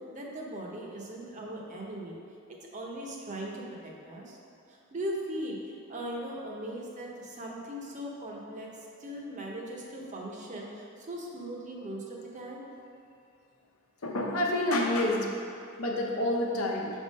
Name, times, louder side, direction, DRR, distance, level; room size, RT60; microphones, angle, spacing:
voice 1, 0.1-2.2 2.5-4.4 4.7-5.6 5.9-8.7 9.0-12.6, right 1 dB, 35° right, -2 dB, 0.8 m, -39 dB
voice 2, 14.0-15.3 15.8-16.9, left 1 dB, 85° left, -1 dB, 0.9 m, -28 dB
5.7 x 3.6 x 5.3 m, 2.4 s
head